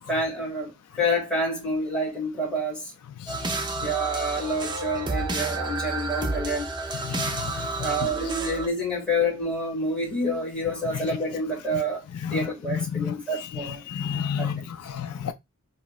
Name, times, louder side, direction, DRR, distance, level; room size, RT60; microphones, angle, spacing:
voice 1, 0.1-2.9 3.8-6.7 7.8-12.0 12.3-13.8 14.4-14.7, equal, 5° left, 2.2 m, -28 dB
voice 2, 3.2-3.5 7.0-7.9 10.9-11.0 12.2-12.4 12.7-15.3, left 7 dB, 75° left, 0.4 m, -31 dB
sound 1, 3.3-8.7, right 3 dB, 20° right, 0.6 m, -30 dB
4.1 x 3.0 x 2.4 m
head